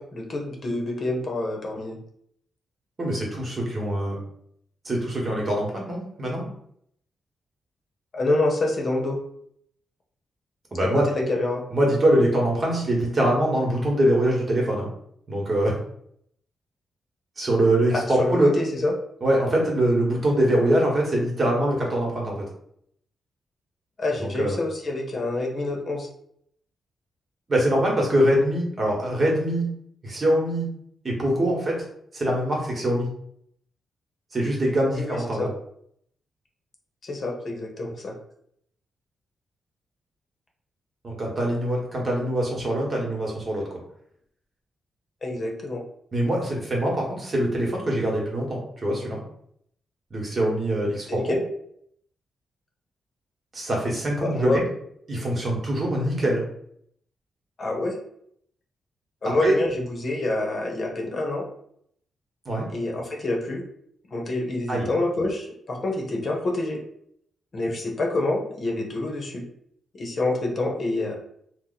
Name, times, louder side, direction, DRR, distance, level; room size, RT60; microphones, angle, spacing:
voice 1, 0.0-2.0 8.1-9.2 10.8-11.6 17.9-18.9 24.0-26.1 34.9-35.5 37.0-38.1 45.2-45.8 51.1-51.4 54.2-54.6 57.6-57.9 59.2-61.5 62.7-63.6 64.1-66.8 67.5-69.5 70.0-71.1, left 2 dB, 50° left, 1 dB, 0.8 m, -27 dB
voice 2, 3.0-4.2 4.8-6.5 10.7-11.1 11.7-14.9 15.3-15.7 17.4-18.5 19.2-22.4 24.2-24.6 27.5-29.7 30.0-30.7 31.0-31.8 32.1-33.1 34.3-35.5 41.0-43.6 46.1-49.2 50.1-51.4 53.5-54.6 55.1-56.4 59.2-59.5 62.4-62.7 64.7-64.9, right 1 dB, 40° right, -2 dB, 1.2 m, -23 dB
2.8 x 2.1 x 4.0 m, 0.69 s
cardioid pair, 75°, 0 cm